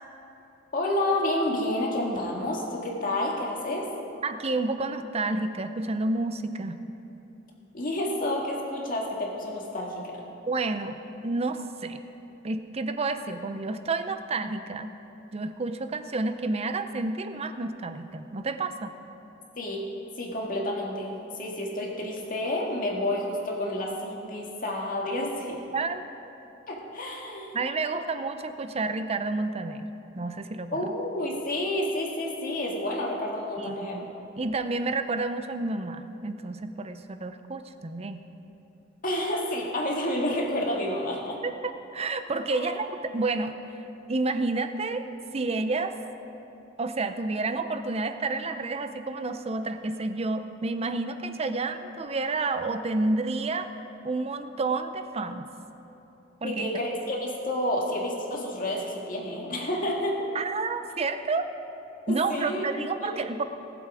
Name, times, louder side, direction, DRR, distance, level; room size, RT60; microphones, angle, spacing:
voice 1, 0.7-3.8 7.7-10.2 19.6-19.8 20.2-25.6 26.7-27.6 30.7-34.0 39.0-41.4 42.5-42.7 56.4-60.3 62.1-63.1, left 1 dB, 45° left, -2 dB, 1.9 m, -30 dB
voice 2, 4.2-6.8 10.5-12.0 12.4-14.9 15.3-18.9 25.7-26.0 27.5-29.9 30.2-30.9 33.6-34.1 34.4-38.2 41.4-43.5 44.1-45.1 45.3-46.0 46.8-53.7 54.0-55.5 56.4-56.7 60.3-61.5 62.1-63.4, right 3 dB, 30° right, 9 dB, 0.6 m, -30 dB
19.0 x 7.5 x 4.9 m, 3.0 s
head